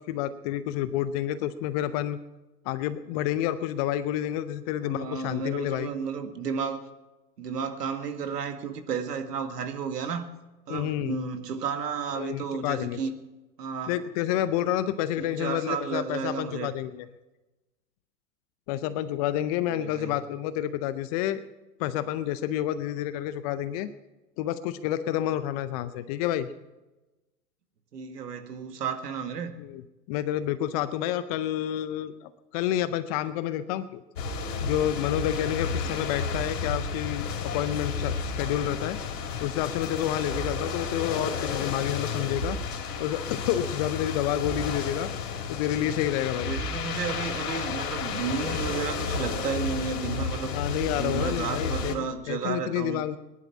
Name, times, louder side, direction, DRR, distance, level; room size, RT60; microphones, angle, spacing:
voice 1, 0.0-2.2 2.6-5.9 10.7-11.2 12.2-13.0 13.9-17.1 18.7-21.4 21.8-23.9 24.4-26.5 29.6-29.8 30.1-34.0 34.6-39.0 39.4-42.6 43.0-45.1 45.5-46.5 50.5-53.2, left 12 dB, 25° left, 0.5 m, -29 dB
voice 2, 4.8-6.9 7.4-10.3 10.7-13.1 13.6-14.0 15.2-16.8 19.7-20.2 27.9-29.5 40.7-40.9 46.3-50.5 50.9-53.0, right 6 dB, 75° right, 2.0 m, -33 dB
sound 1, 34.2-52.0, left 5 dB, 65° left, 3.5 m, -32 dB
19.5 x 11.0 x 5.9 m
hypercardioid pair, 115°, 48 cm